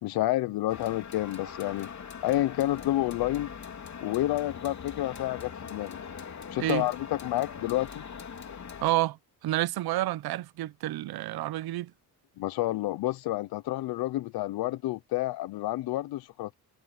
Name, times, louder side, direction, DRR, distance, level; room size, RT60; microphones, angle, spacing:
voice 1, 0.0-1.9 2.2-3.5 4.0-6.0 6.5-8.0 12.4-16.5, left 16 dB, 85° left, 0.7 m, -29 dB
sound 1, 0.7-8.9, left 6 dB, 50° left, 3.1 m, -42 dB
voice 2, 8.8-9.2 9.4-11.9, right 15 dB, 90° right, 0.8 m, -29 dB
cardioid pair, 85°, 36 cm